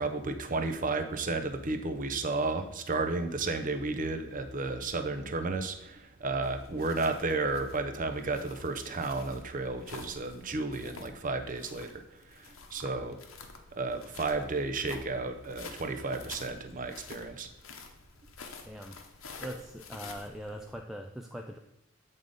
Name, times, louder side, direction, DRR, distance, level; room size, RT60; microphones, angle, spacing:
voice 1, 0.0-12.0 12.3-13.2 13.7-17.5, right 3 dB, 40° right, 8 dB, 0.6 m, -33 dB
sound 1, 6.4-20.7, left 4 dB, 70° left, 0.9 m, -49 dB
voice 2, 18.6-19.0 19.4-21.6, equal, ahead, 2 dB, 0.3 m, -41 dB
7.9 x 3.7 x 5.2 m, 0.91 s
head